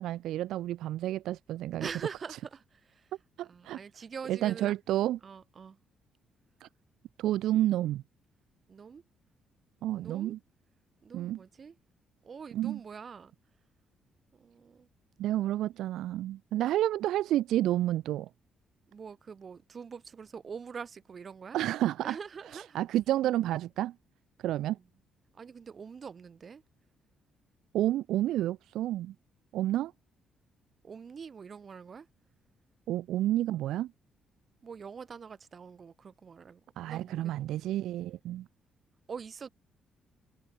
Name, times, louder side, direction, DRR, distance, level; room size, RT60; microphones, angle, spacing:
voice 1, 0.0-1.9 3.4-3.8 4.3-5.2 6.6-6.7 7.2-8.0 9.8-10.4 11.1-11.4 12.5-12.8 15.2-18.3 21.5-22.2 22.5-23.9 24.4-24.8 27.7-29.1 29.5-29.9 32.9-33.9 36.8-38.5, right 13 dB, 75° right, 0.5 m, -30 dB
voice 2, 1.8-3.1 3.5-4.7 5.2-5.8 8.7-9.0 9.9-10.4 11.0-11.7 12.2-13.3 14.3-14.9 18.9-21.6 22.0-22.8 24.7-24.8 25.3-26.6 30.8-32.1 34.6-37.6 39.1-39.5, right 6 dB, 50° right, 3.4 m, -44 dB
supercardioid pair, 55°, 0 cm